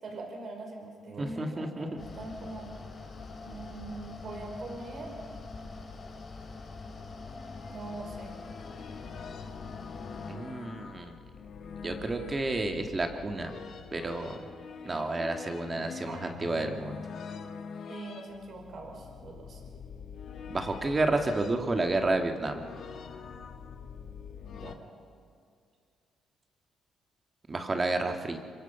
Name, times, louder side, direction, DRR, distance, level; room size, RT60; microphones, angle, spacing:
voice 1, 0.0-2.7 3.4-5.1 7.7-8.3 16.1-16.2 17.9-19.6 24.5-24.8, right 2 dB, 55° right, 2 dB, 5.4 m, -42 dB
voice 2, 1.2-2.0 10.3-11.1 11.8-13.5 13.9-14.4 14.8-17.0 20.5-22.6 27.5-28.4, right 2 dB, 30° right, 5 dB, 2.1 m, -30 dB
Mechanical fan, 2.0-10.3, left 3 dB, 40° left, 4.4 m, -44 dB
sound 1, 6.6-24.8, left 6 dB, 60° left, 1.6 m, -45 dB
25.5 x 23.0 x 5.7 m, 2.3 s
cardioid pair, 90°, 0 cm